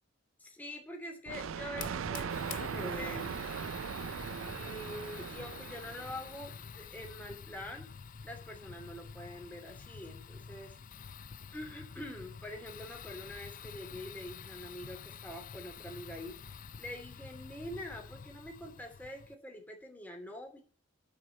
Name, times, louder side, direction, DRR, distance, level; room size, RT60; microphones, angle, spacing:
voice 1, 0.4-3.7 4.4-7.9 8.2-10.8 11.5-16.4 16.8-20.6, left 1 dB, 10° left, 1 dB, 2.8 m, -45 dB
Thunder, 1.3-6.6, right 6 dB, 80° right, 0.4 m, -39 dB
Fire, 1.7-19.3, left 6 dB, 40° left, 0.5 m, -48 dB
10.5 x 6.3 x 7.8 m, 0.39 s
head